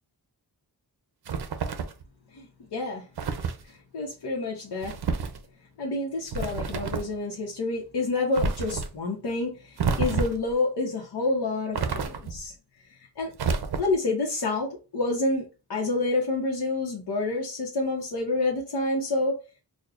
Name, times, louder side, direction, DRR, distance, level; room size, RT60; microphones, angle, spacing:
sound 1, 1.3-2.0 3.2-3.6 4.8-5.4 6.3-7.1 8.3-8.9 9.8-10.5 11.7-12.5 13.4-14.1, right 5 dB, 70° right, 0.6 m, -29 dB
voice 1, 2.3-3.1 3.6-5.0 5.8-12.5 13.0-13.3 13.8-19.4, left 2 dB, 85° left, 1.0 m, -28 dB
6.3 x 2.2 x 2.5 m
wide cardioid pair, 120°, 40 cm